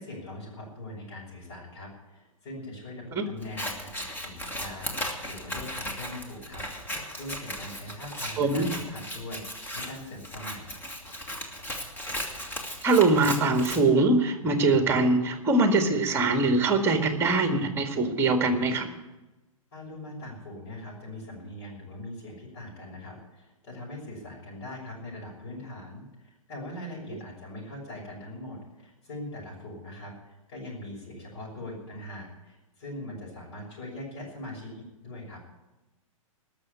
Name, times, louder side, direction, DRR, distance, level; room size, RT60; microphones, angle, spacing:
voice 1, 0.0-10.7 19.7-35.4, left 1 dB, 45° left, -5 dB, 6.3 m, -41 dB
Scissors, 3.4-13.8, equal, 10° left, 1.9 m, -37 dB
voice 2, 8.4-8.7 12.8-18.9, right 3 dB, 15° right, 6 dB, 1.9 m, -23 dB
20.0 x 6.7 x 8.6 m, 1.1 s
figure-of-eight pair, 110°, 18 cm